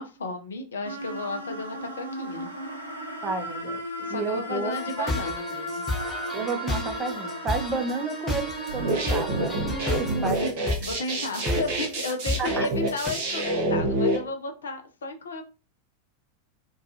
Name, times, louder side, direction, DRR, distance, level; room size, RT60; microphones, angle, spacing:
voice 1, 0.0-2.5 4.0-5.9 9.6-10.5 10.8-15.4, left 2 dB, 65° left, 0.4 m, -33 dB
sound 1, 0.8-10.1, equal, 85° right, 0.6 m, -35 dB
voice 2, 3.2-3.8 4.1-5.1 6.3-9.6 10.0-10.4 12.4-12.7, right 4 dB, 20° right, 0.5 m, -31 dB
sound 2, 4.7-13.1, left 2 dB, 15° left, 0.7 m, -32 dB
sound 3, 8.7-14.2, right 1 dB, 50° right, 0.8 m, -27 dB
2.3 x 2.2 x 2.7 m
figure-of-eight pair, 90°, 0 cm